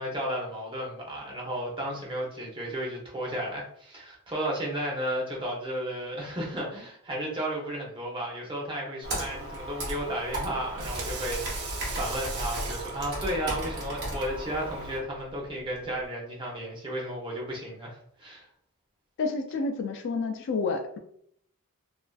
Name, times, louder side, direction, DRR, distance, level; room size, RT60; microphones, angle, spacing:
voice 1, 0.0-18.4, equal, 25° right, -2 dB, 0.7 m, -33 dB
Computer keyboard, 9.0-15.0, right 1 dB, 50° right, 0.9 m, -35 dB
Water tap faucet / Sink (filling or washing), 10.6-16.1, right 3 dB, 85° right, 0.6 m, -41 dB
voice 2, 19.2-21.0, left 4 dB, 55° left, 5 dB, 0.3 m, -29 dB
2.4 x 2.3 x 2.3 m, 0.67 s
head